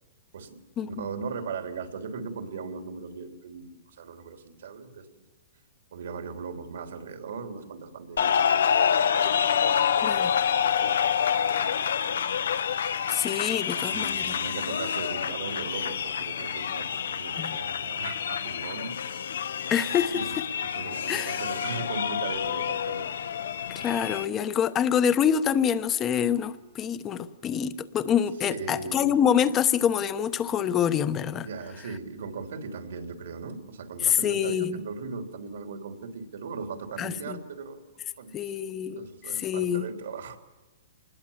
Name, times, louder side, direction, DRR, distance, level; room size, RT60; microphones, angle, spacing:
voice 1, 0.3-5.1 5.9-9.9 10.5-12.1 13.8-19.0 20.2-20.3 20.6-23.1 28.4-29.2 31.4-37.8 38.2-38.4 38.9-40.4, right 4 dB, 75° right, 4 dB, 3.4 m, -38 dB
sound 1, 8.2-24.2, left 8 dB, 85° left, 1.1 m, -27 dB
voice 2, 10.0-10.3 13.1-14.4 17.4-17.6 19.7-20.2 21.1-21.4 23.7-31.5 34.0-34.8 37.0-37.4 38.3-39.1 39.3-39.9, left 8 dB, 20° left, 12 dB, 1.0 m, -26 dB
27.0 x 20.5 x 7.3 m, 1.2 s
hypercardioid pair, 160°, 0 cm